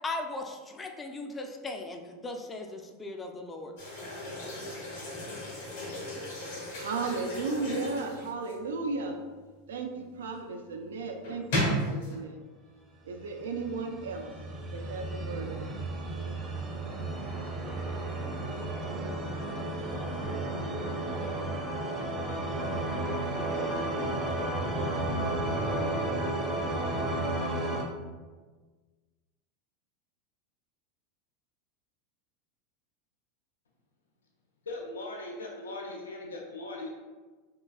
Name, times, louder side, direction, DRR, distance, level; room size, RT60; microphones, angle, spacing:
voice 1, 0.0-3.7, left 2 dB, 20° left, 3 dB, 0.4 m, -38 dB
sound 1, 3.8-8.7 11.2-12.2, equal, 70° left, 1.1 m, -34 dB
voice 2, 6.8-9.2 9.7-12.4 13.0-14.3 14.7-15.6 25.2-26.4, right 3 dB, 80° right, 4 dB, 0.4 m, -35 dB
sound 2, 13.5-27.8, right 1 dB, 25° right, 0.6 m, -33 dB
voice 3, 34.7-36.9, left 2 dB, 90° left, -1 dB, 0.4 m, -39 dB
3.7 x 2.3 x 2.3 m, 1.3 s
hypercardioid pair, 95°, 0 cm